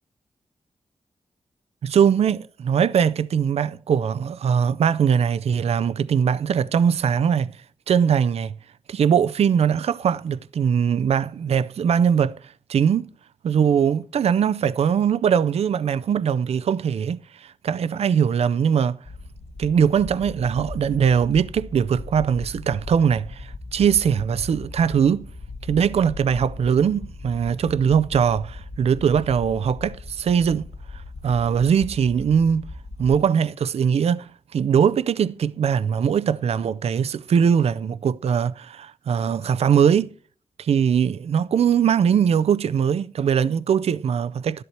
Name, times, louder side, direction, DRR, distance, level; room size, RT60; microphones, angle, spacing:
voice 1, 1.8-7.6 7.9-8.5 8.9-13.1 13.4-19.0 19.6-25.3 25.6-30.7 30.9-32.6 33.0-40.1 40.6-44.6, right 7 dB, 75° right, 0.5 m, -21 dB
sound 1, 19.0-33.2, left 2 dB, 80° left, 2.0 m, -38 dB
12.5 x 11.0 x 4.3 m
cardioid pair, 75°, 11 cm